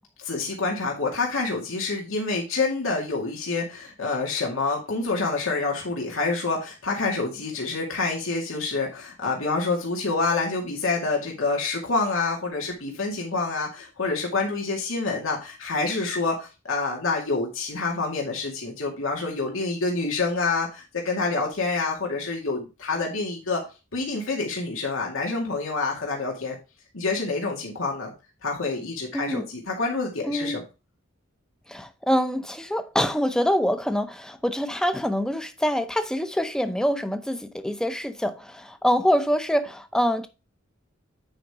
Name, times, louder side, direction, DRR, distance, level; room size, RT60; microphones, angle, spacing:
voice 1, 0.2-23.6 23.9-26.6 26.9-28.1 28.4-30.6, left 3 dB, 85° left, 2.2 m, -27 dB
voice 2, 29.1-29.5 30.2-30.6 31.7-40.3, equal, 5° left, 0.6 m, -25 dB
8.9 x 5.1 x 3.6 m
head